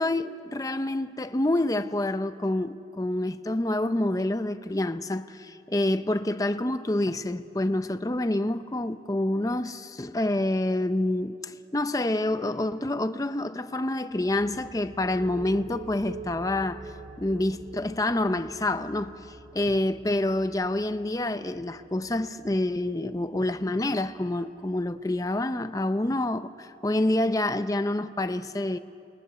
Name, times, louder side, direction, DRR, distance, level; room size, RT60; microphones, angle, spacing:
voice 1, 0.0-16.8 17.2-28.8, left 1 dB, 20° left, 0.6 m, -27 dB
sound 1, 14.1-25.6, right 2 dB, 50° right, 4.2 m, -46 dB
29.5 x 20.0 x 6.9 m
head